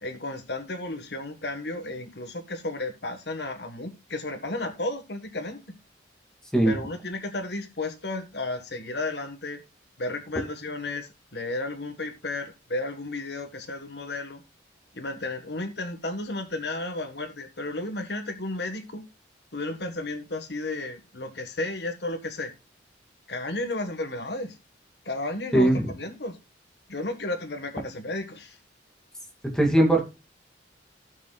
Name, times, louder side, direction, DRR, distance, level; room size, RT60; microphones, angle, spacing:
voice 1, 0.0-5.6 6.6-9.6 10.0-14.4 14.9-19.0 19.5-22.5 23.3-24.6 25.0-26.4 26.9-28.6, left 2 dB, 60° left, 1.5 m, -33 dB
voice 2, 25.5-25.9 29.5-30.0, right 1 dB, 5° left, 2.3 m, -19 dB
16.5 x 6.6 x 2.4 m
head